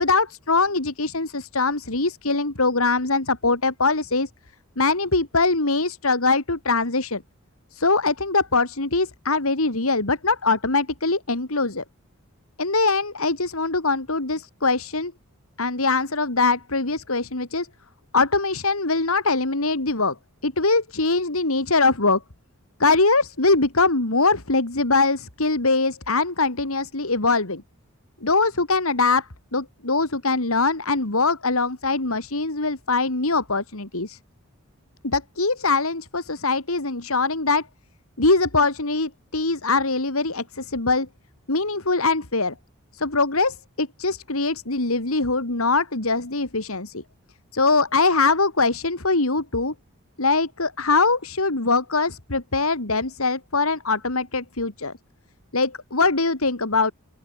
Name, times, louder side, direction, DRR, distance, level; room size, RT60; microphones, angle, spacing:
voice 1, 0.0-4.3 4.8-7.2 7.7-11.8 12.6-15.1 15.6-17.7 18.1-20.2 20.4-22.2 22.8-27.6 28.2-34.2 35.0-37.7 38.2-41.1 41.5-42.5 42.9-47.0 47.5-49.7 50.2-54.9 55.5-56.9, left 3 dB, 75° left, 2.8 m, -22 dB
open air
head